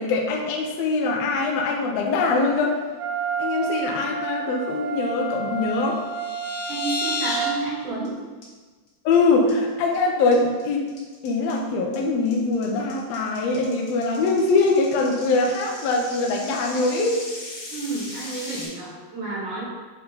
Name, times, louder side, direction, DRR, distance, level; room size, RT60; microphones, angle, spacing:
voice 1, 0.0-2.8 3.4-6.0 9.0-10.9 11.2-17.2, left 3 dB, 75° left, 0 dB, 1.5 m, -22 dB
Wind instrument woodwind instrument, 3.0-7.6, right 6 dB, 75° right, 2.1 m, -30 dB
sound 1, 5.8-7.5 7.8-8.1 8.4-8.5 8.9-9.1 9.5-10.0 10.3-18.7, left 3 dB, 50° left, 2.6 m, -35 dB
voice 2, 6.7-8.2 17.7-19.6, right 2 dB, 45° right, -6 dB, 1.8 m, -30 dB
7.1 x 4.5 x 3.9 m, 1.4 s
omnidirectional pair, 3.9 m